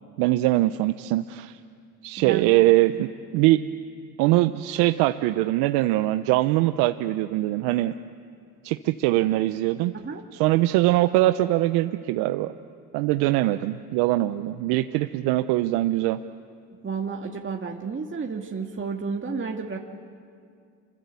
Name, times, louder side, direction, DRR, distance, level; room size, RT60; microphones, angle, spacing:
voice 1, 0.2-1.6 2.0-3.6 4.2-7.9 8.6-9.9 10.4-12.5 12.9-16.2, right 16 dB, 80° right, 10 dB, 0.8 m, -22 dB
voice 2, 16.8-19.8, right 5 dB, 30° right, 1 dB, 2.2 m, -31 dB
27.5 x 25.0 x 8.3 m, 2.2 s
supercardioid pair, 65°, 39 cm